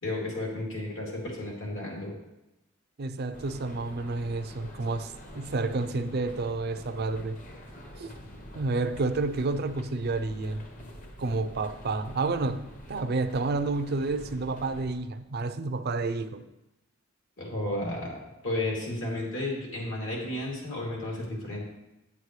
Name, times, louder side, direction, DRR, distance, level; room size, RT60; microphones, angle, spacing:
voice 1, 0.0-2.1 17.4-21.6, left 1 dB, 70° left, -3 dB, 2.8 m, -33 dB
voice 2, 3.0-7.4 8.0-8.1 8.5-10.6 11.2-12.6 12.9-16.4, right 3 dB, 55° right, 11 dB, 0.5 m, -30 dB
sound 1, 3.3-15.0, equal, 40° left, 1.1 m, -46 dB
9.2 x 8.1 x 3.2 m, 0.95 s
head